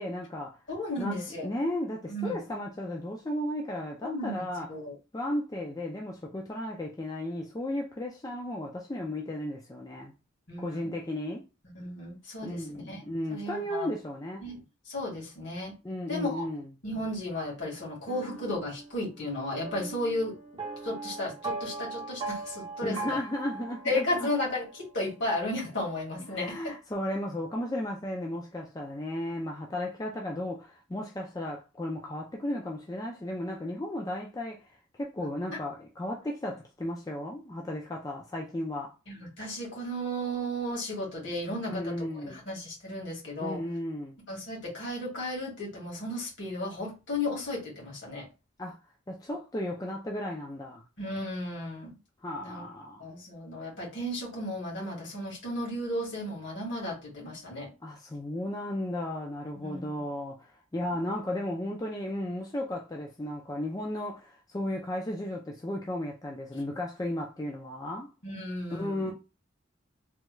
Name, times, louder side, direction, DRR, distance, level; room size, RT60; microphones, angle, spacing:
voice 1, 0.0-0.6 1.0-4.7 5.1-10.1 10.6-11.4 12.4-14.4 15.8-16.7 22.8-24.3 26.2-34.6 35.0-38.9 41.7-42.4 43.4-44.2 48.6-48.8 49.1-50.8 52.2-53.1 57.8-68.1 68.7-69.1, left 1 dB, 20° left, 0.4 m, -34 dB
voice 2, 0.7-1.5 2.1-2.4 4.0-4.4 4.7-5.0 10.5-10.9 11.8-13.0 13.3-13.9 14.4-15.7 16.1-16.5 16.8-20.3 20.8-23.2 23.9-26.6 39.1-43.6 44.3-48.3 51.0-51.9 52.4-52.6 53.0-57.7 59.5-59.9 68.2-69.1, left 1 dB, 65° left, 1.9 m, -34 dB
sound 1, 18.1-25.0, right 3 dB, 25° right, 0.6 m, -40 dB
3.4 x 2.3 x 3.0 m
head